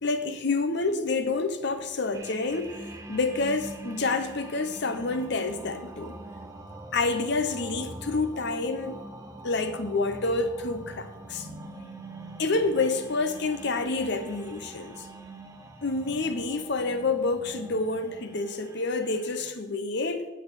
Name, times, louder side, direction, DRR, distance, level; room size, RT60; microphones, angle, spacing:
voice 1, 0.0-6.2 6.9-9.0 9.4-11.5 12.4-15.1 15.8-20.3, left 3 dB, 60° left, 0.8 m, -28 dB
sound 1, 2.1-19.5, right 2 dB, 15° right, 0.8 m, -44 dB
11.5 x 4.7 x 6.3 m
head